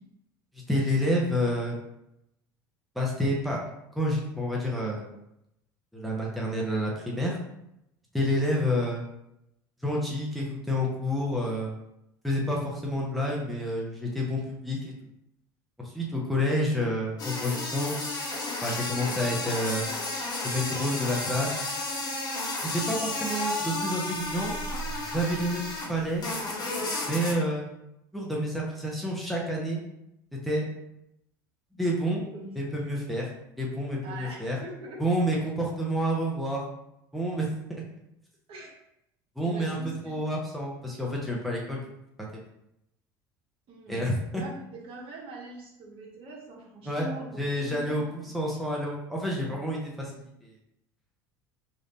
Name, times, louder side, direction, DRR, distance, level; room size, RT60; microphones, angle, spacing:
voice 1, 0.7-1.8 3.0-3.7 3.9-5.1 5.9-7.4 8.1-9.0 9.8-11.7 12.2-14.9 15.8-17.9 18.6-19.9 20.4-21.5 22.6-24.5 25.1-26.3 27.1-27.7 28.1-29.8 30.4-30.6 31.7-32.3 32.6-33.3 33.6-34.6 35.0-36.6 37.1-37.8 39.4-39.8 40.0-41.9 42.2-42.3 43.9-44.4 46.9-47.1 47.4-50.1 50.4-50.5, equal, ahead, -3 dB, 0.9 m, -29 dB
sound 1, 17.2-25.9 26.2-27.3, left 2 dB, 35° left, 1.3 m, -32 dB
sound 2, 24.1-26.5, right 3 dB, 70° left, 1.1 m, -42 dB
voice 2, 32.3-32.8 34.0-35.0 38.5-38.8 39.4-40.4 43.7-48.3, right 2 dB, 50° right, -2 dB, 1.3 m, -43 dB
3.3 x 2.6 x 3.9 m, 0.83 s
hypercardioid pair, 75°, 12 cm